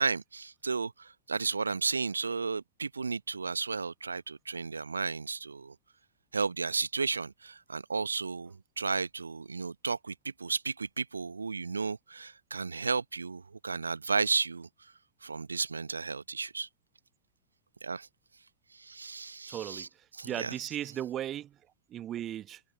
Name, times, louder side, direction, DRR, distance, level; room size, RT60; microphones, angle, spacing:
voice 1, 0.0-5.7 6.3-14.7 15.2-16.7 17.8-18.1 18.7-20.6, right 4 dB, 75° right, 1.0 m, -33 dB
voice 2, 19.5-19.9 20.2-21.5 21.9-22.6, right 11 dB, 30° right, 1.3 m, -36 dB
figure-of-eight pair, 90°, 0 cm